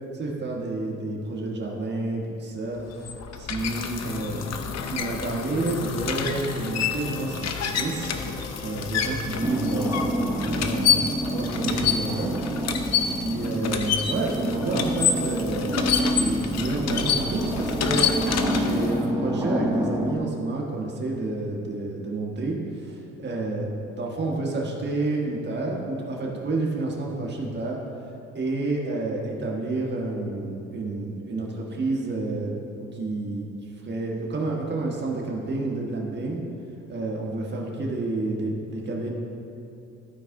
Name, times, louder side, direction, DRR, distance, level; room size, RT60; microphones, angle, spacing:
voice 1, 0.1-2.8 3.3-8.1 8.6-11.0 11.3-12.3 13.2-23.6 24.0-27.8 28.3-32.5 32.9-33.5 33.8-36.4 36.9-39.1, right 2 dB, 35° right, -1 dB, 1.4 m, -29 dB
sound 1, 2.8-19.0, left 7 dB, 60° left, 0.7 m, -28 dB
Organ, 4.0-9.8, left 5 dB, 20° left, 0.3 m, -38 dB
sound 2, 9.4-20.2, right 1 dB, 15° right, 0.7 m, -28 dB
12.5 x 4.8 x 3.8 m, 2.7 s
cardioid pair, 90°, 30 cm